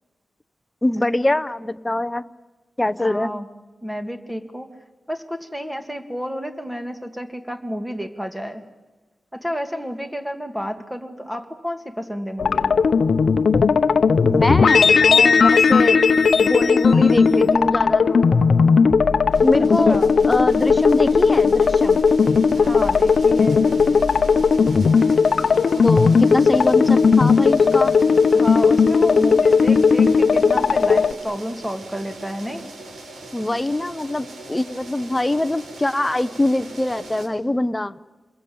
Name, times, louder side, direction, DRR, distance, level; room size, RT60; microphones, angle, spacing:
voice 1, 0.8-2.2 2.8-3.3 14.2-16.0 16.4-18.3 19.4-20.0 20.3-22.0 25.8-27.9 33.3-37.9, left 1 dB, 15° left, 12 dB, 0.8 m, -23 dB
voice 2, 3.0-3.5 3.8-4.7 5.1-8.6 9.3-12.7 19.8-20.1 22.6-23.7 28.3-32.7, equal, 5° right, 7 dB, 2.2 m, -30 dB
sound 1, 12.4-31.1, left 5 dB, 65° left, 0.8 m, -16 dB
sound 2, 19.3-37.3, right 2 dB, 85° right, 4.3 m, -40 dB
28.0 x 21.5 x 8.6 m, 1.2 s
wide cardioid pair, 120°, 0 cm